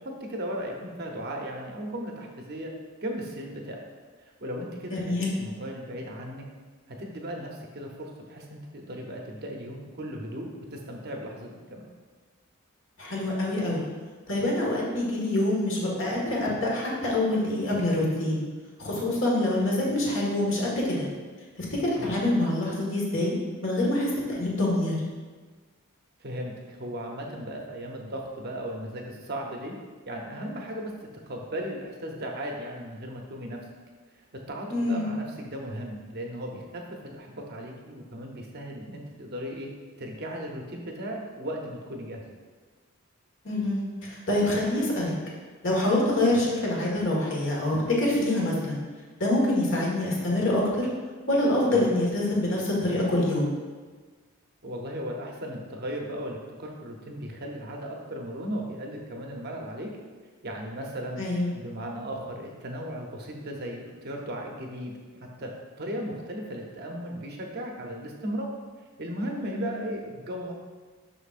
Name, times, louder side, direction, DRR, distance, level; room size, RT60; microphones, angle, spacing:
voice 1, 0.0-2.7 3.0-3.9 4.2-6.4 6.9-11.8 22.0-22.2 26.2-29.7 30.1-33.6 34.3-39.7 40.0-42.4 51.7-51.9 54.6-59.9 60.4-61.2 61.5-65.5 65.8-68.5 69.0-70.5, equal, 45° right, 1 dB, 0.7 m, -36 dB
voice 2, 4.9-5.3 13.0-13.9 14.3-18.4 18.8-21.1 21.6-23.4 23.6-24.9 34.7-35.1 43.4-45.1 45.6-48.8 49.2-50.9 51.3-53.5 61.2-61.5 69.4-69.7, left 1 dB, 55° left, -3 dB, 1.6 m, -26 dB
6.8 x 5.9 x 2.5 m, 1.4 s
head